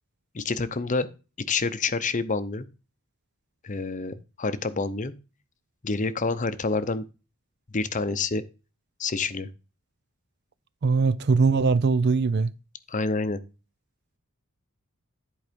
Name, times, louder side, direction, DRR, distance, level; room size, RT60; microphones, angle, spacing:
voice 1, 0.3-1.1 1.4-2.7 3.6-5.1 5.8-7.1 7.7-8.4 9.0-9.5 12.9-13.4, left 3 dB, 35° left, 0.7 m, -28 dB
voice 2, 10.8-12.5, right 4 dB, 50° right, 0.4 m, -21 dB
11.0 x 4.8 x 5.1 m
head